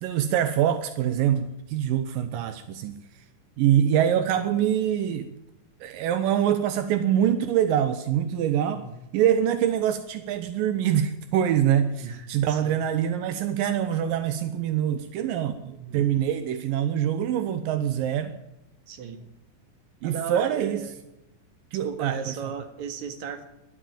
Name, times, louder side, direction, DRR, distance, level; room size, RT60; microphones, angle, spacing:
voice 1, 0.0-2.9 3.6-5.3 5.8-8.8 9.1-18.3 20.0-20.8 21.7-22.2, right 10 dB, 80° right, 10 dB, 2.5 m, -24 dB
voice 2, 12.0-12.7 15.7-16.1 18.9-19.2 20.0-21.0 21.8-23.4, right 7 dB, 60° right, 7 dB, 2.9 m, -36 dB
12.5 x 11.5 x 9.0 m, 0.90 s
omnidirectional pair, 4.0 m